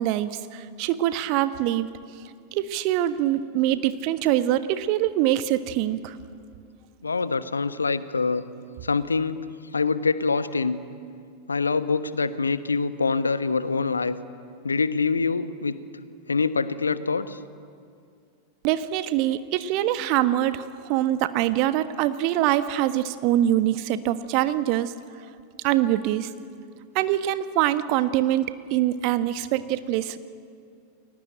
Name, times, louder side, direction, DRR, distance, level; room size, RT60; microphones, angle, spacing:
voice 1, 0.0-1.9 2.5-6.1 18.6-24.9 25.6-26.3 26.9-30.2, right 13 dB, 45° right, 12 dB, 1.3 m, -24 dB
voice 2, 7.0-8.4 8.8-9.4 9.7-10.8 11.5-14.2 14.6-15.8 16.3-17.4, left 4 dB, 75° left, 13 dB, 1.1 m, -25 dB
29.5 x 22.0 x 8.9 m, 2.3 s
figure-of-eight pair, 90°, 0 cm